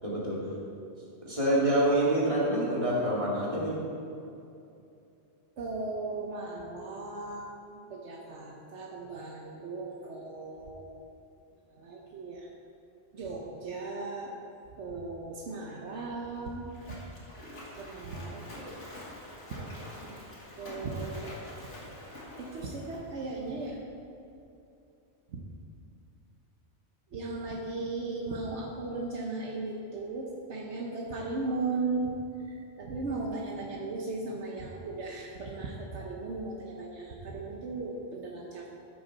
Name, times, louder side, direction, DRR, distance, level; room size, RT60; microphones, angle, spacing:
voice 1, 0.0-0.4 1.2-3.8, right 1 dB, 30° right, -6 dB, 2.4 m, -26 dB
voice 2, 5.6-10.9 11.7-12.5 13.1-14.4 14.7-17.0 17.8-18.6 19.5-19.7 20.0-20.2 20.6-21.4 22.4-23.8 25.3-25.4 27.1-32.1 32.4-38.7, right 3 dB, 75° right, -1 dB, 1.2 m, -37 dB
Splash splatter, 15.9-23.8, left 1 dB, 90° left, 2.3 m, -47 dB
13.5 x 6.9 x 4.0 m, 2.7 s
omnidirectional pair, 1.2 m